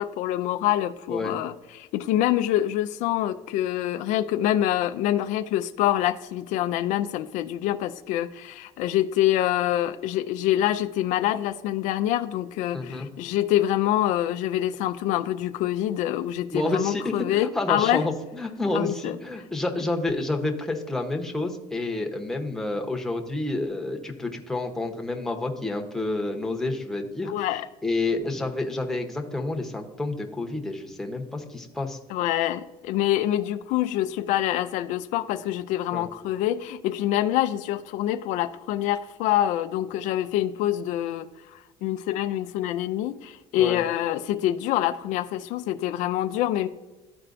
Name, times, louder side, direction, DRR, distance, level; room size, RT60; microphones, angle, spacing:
voice 1, 0.0-18.1 18.7-19.2 27.3-27.7 32.1-46.7, left 13 dB, 75° left, 10 dB, 0.4 m, -26 dB
voice 2, 12.7-13.1 16.5-27.3 27.8-32.0 35.9-36.1 43.6-43.8, left 2 dB, 5° left, 1 dB, 0.9 m, -29 dB
13.0 x 4.4 x 2.6 m, 1.2 s
cardioid pair, 130°, 13 cm